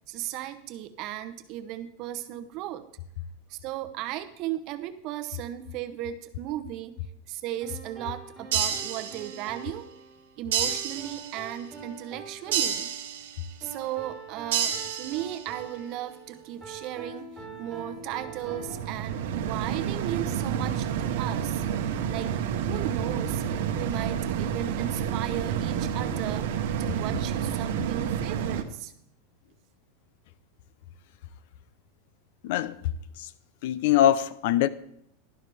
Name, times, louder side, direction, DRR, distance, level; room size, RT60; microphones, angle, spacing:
voice 1, 0.1-2.8 3.5-7.0 7.3-9.8 10.4-12.9 13.6-17.3 17.6-21.6 22.1-22.3 22.7-26.5 26.8-28.9, right 13 dB, 40° right, 0.8 m, -36 dB
sound 1, 7.6-18.8, right 3 dB, ahead, 3.7 m, -44 dB
sound 2, 8.5-9.6 10.5-11.6 12.5-13.6 14.5-15.6, right 9 dB, 90° right, 1.2 m, -30 dB
sound 3, 17.4-28.6, right 8 dB, 70° right, 1.0 m, -30 dB
voice 2, 32.4-32.8 33.2-33.3 33.6-34.7, left 12 dB, 60° left, 0.5 m, -23 dB
11.5 x 11.5 x 3.4 m
supercardioid pair, 165°, 0 cm